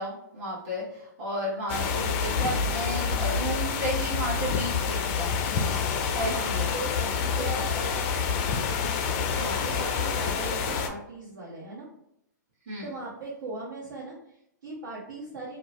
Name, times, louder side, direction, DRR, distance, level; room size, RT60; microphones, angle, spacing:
voice 1, 0.0-5.4 6.1-6.7 7.4-7.7 9.4-9.6 12.7-12.9, equal, 45° right, -8 dB, 1.1 m, -33 dB
sound 1, 1.7-10.9, left 6 dB, 35° left, 0.4 m, -28 dB
voice 2, 6.3-8.4 9.2-11.9 12.8-15.6, right 2 dB, 75° right, -7 dB, 0.9 m, -39 dB
2.5 x 2.1 x 2.9 m, 0.77 s
hypercardioid pair, 125°, 10 cm